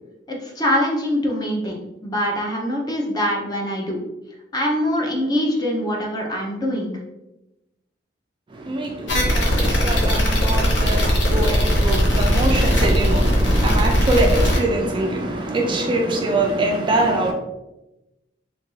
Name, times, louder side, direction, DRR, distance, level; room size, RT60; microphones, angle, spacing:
voice 1, 0.3-4.0 4.5-6.9, equal, 20° left, 0.6 m, -23 dB
voice 2, 8.5-17.3, right 2 dB, 25° right, 0.3 m, -23 dB
sound 1, 9.1-14.6, equal, 75° left, 0.8 m, -19 dB
3.0 x 2.4 x 3.0 m
head